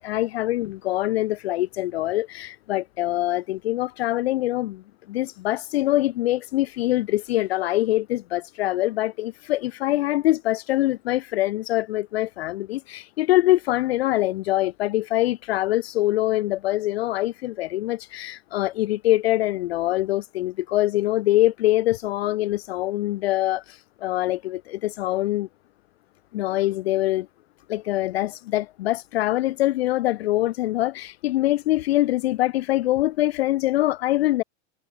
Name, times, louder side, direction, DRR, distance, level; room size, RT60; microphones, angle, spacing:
voice 1, 0.0-25.5 26.3-27.3 27.7-34.4, left 16 dB, 55° left, 0.7 m, -24 dB
supercardioid pair, 180°, 36 cm